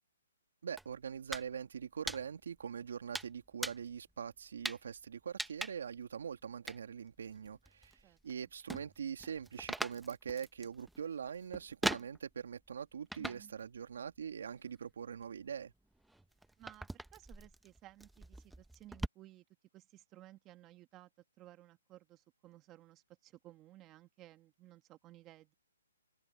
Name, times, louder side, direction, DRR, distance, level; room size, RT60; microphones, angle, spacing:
voice 1, 0.6-15.7, right 7 dB, 70° right, 2.6 m, -43 dB
sound 1, 0.8-1.5 1.8-2.6 3.2-4.0 4.6-4.9 5.4-6.0 6.7-6.8 7.3-8.3 8.6-12.5 13.1-13.6 13.9-14.6 15.2-19.1, right 1 dB, ahead, 1.1 m, -41 dB
voice 2, 13.2-13.6 16.6-19.4 19.7-21.1 21.4-25.5, right 15 dB, 20° right, 1.6 m, -57 dB
hypercardioid pair, 155°, 0 cm